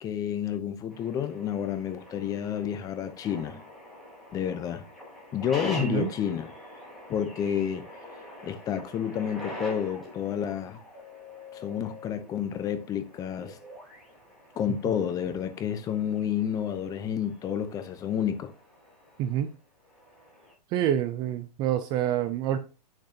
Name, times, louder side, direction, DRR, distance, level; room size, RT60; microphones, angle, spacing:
voice 1, 0.0-3.6 4.3-4.8 5.3-6.5 7.1-7.8 8.4-10.8 11.5-13.6 14.6-18.5, left 9 dB, 15° left, 0.7 m, -30 dB
sound 1, 0.9-20.5, left 1 dB, ahead, 3.0 m, -45 dB
voice 2, 5.8-6.1 14.9-15.0 19.2-19.5 20.7-22.6, right 11 dB, 20° right, 0.4 m, -27 dB
8.3 x 6.6 x 2.8 m
hypercardioid pair, 150°, 21 cm